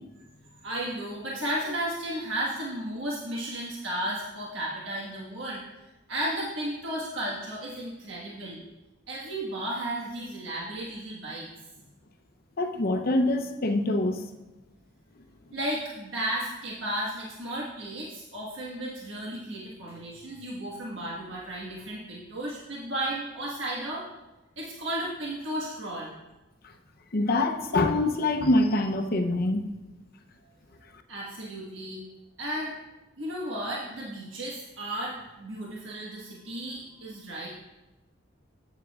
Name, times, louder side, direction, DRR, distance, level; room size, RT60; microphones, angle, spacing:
voice 1, 0.6-5.6 6.1-8.6 9.1-11.5 15.5-24.0 24.6-26.1 31.1-32.0 32.4-32.7 33.2-37.5, right 1 dB, 70° right, -5 dB, 1.5 m, -34 dB
voice 2, 12.6-14.2 27.1-29.6, left 2 dB, 50° left, 6 dB, 0.7 m, -24 dB
12.5 x 8.3 x 2.4 m, 1.0 s
head